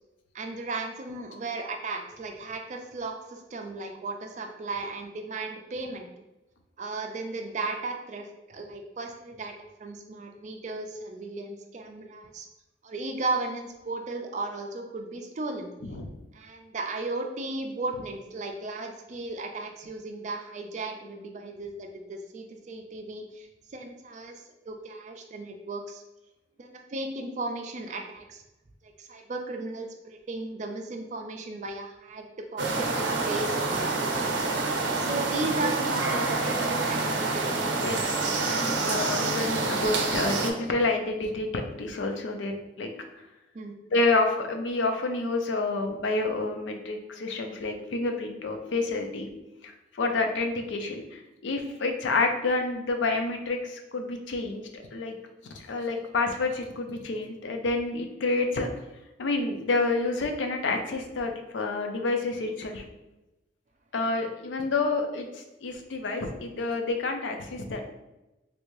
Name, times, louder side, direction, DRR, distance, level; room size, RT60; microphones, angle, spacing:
voice 1, 0.3-6.1 6.8-12.5 12.8-15.7 16.3-26.0 26.6-28.4 28.8-34.5 35.0-37.9 38.8-39.0 43.5-43.8, right 3 dB, 40° right, 4 dB, 0.4 m, -35 dB
sound 1, 32.6-40.5, right 3 dB, 90° right, 0.5 m, -27 dB
voice 2, 37.8-42.9 43.9-49.3 49.6-55.2 55.5-58.7 59.2-62.8 63.9-67.8, left 3 dB, 90° left, 4 dB, 0.5 m, -29 dB
3.2 x 2.5 x 3.1 m, 0.99 s
head